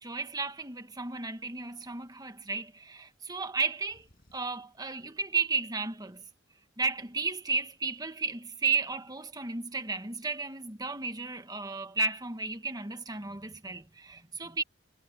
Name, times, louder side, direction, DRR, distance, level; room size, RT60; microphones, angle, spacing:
voice 1, 0.0-6.2 6.8-14.6, right 4 dB, 20° right, 1.4 m, -33 dB
sound 1, 3.8-4.6, equal, 50° left, 7.4 m, -63 dB
head